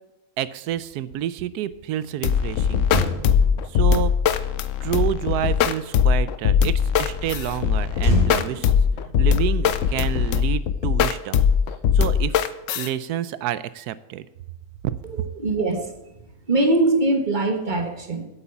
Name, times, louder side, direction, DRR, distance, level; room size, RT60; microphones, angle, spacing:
voice 1, 0.4-2.9 3.6-4.1 4.8-8.7 9.2-11.4 11.9-14.3 14.8-14.9, right 12 dB, 80° right, 16 dB, 1.1 m, -28 dB
sound 1, 2.2-12.9, left 7 dB, 65° left, 0.9 m, -20 dB
Motor vehicle (road), 2.8-6.3 8.0-10.6 10.8-11.1, left 1 dB, 45° left, 2.1 m, -29 dB
voice 2, 15.1-15.9 16.5-18.3, right 2 dB, 30° right, 5 dB, 1.4 m, -22 dB
8.7 x 8.2 x 7.1 m, 0.93 s
omnidirectional pair, 1.6 m